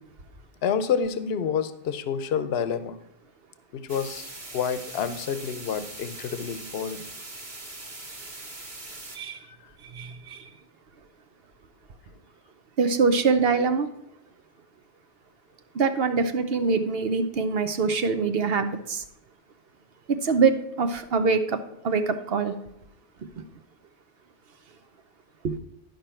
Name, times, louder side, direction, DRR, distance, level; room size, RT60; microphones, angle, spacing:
voice 1, 0.6-3.0 3.7-7.0, left 7 dB, 70° left, 12 dB, 0.9 m, -28 dB
sound 1, 3.9-9.2, right 2 dB, 40° right, 1.6 m, -41 dB
voice 2, 9.8-10.5 12.8-13.9 15.7-19.0 20.1-21.6 21.8-22.5 23.4-23.5 25.4-25.6, right 4 dB, 60° right, 9 dB, 1.0 m, -24 dB
12.0 x 5.3 x 4.3 m, 0.84 s
omnidirectional pair, 1.1 m